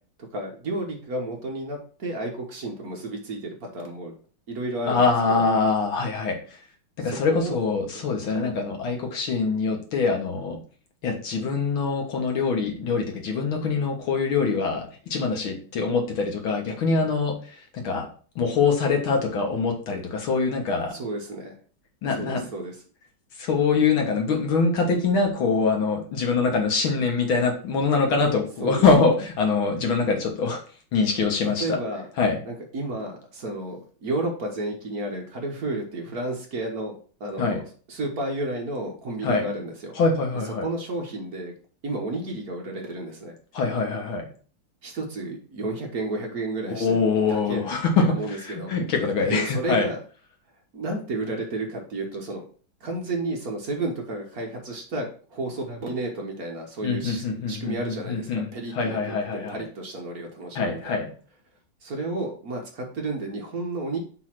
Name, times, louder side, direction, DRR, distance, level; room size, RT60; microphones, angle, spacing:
voice 1, 0.3-4.1 4.5-5.4 7.0-7.6 7.9-8.5 20.9-21.5 22.1-22.7 28.6-28.8 31.6-32.1 32.4-36.9 37.2-39.9 40.6-41.5 41.8-43.4 44.8-47.7 48.0-48.8 49.3-50.0 50.7-52.4 52.8-59.0 59.3-61.0 61.8-64.0, right 2 dB, 50° right, 1 dB, 1.6 m, -32 dB
voice 2, 4.9-6.4 7.0-10.6 11.0-18.1 18.4-20.9 22.0-22.4 23.4-30.6 30.9-31.8 32.2-32.4 37.4-37.6 39.2-39.5 40.0-40.7 43.5-44.2 46.7-49.9 56.8-59.6 60.6-61.1, left 4 dB, 70° left, 2 dB, 2.3 m, -24 dB
6.3 x 3.6 x 5.9 m, 0.41 s
omnidirectional pair, 2.3 m